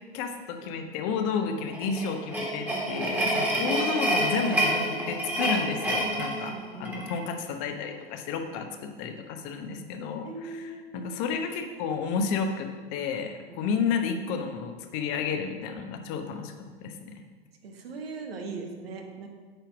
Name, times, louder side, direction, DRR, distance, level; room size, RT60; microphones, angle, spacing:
voice 1, 0.1-16.5 16.8-17.1, left 6 dB, 45° left, 6 dB, 1.1 m, -31 dB
sound 1, 1.7-7.2, right 1 dB, 5° right, 1.8 m, -28 dB
voice 2, 6.5-6.9 10.2-11.2 17.6-19.3, right 3 dB, 70° right, 3 dB, 1.4 m, -39 dB
9.0 x 4.4 x 5.9 m, 1.5 s
figure-of-eight pair, 100°, 31 cm